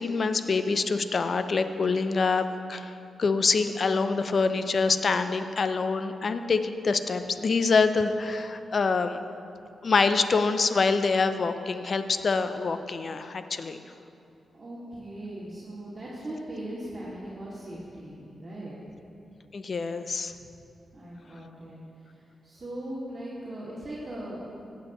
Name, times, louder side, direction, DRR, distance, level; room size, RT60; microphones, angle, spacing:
voice 1, 0.0-2.9 3.2-9.2 9.8-13.8 19.5-20.3, left 4 dB, 55° left, 9 dB, 0.5 m, -25 dB
voice 2, 14.5-18.8 20.3-20.4 20.9-21.8 22.1-24.7, right 1 dB, 40° right, -9 dB, 2.3 m, -39 dB
15.0 x 8.3 x 3.1 m, 2.6 s
cardioid pair, 60°, 0 cm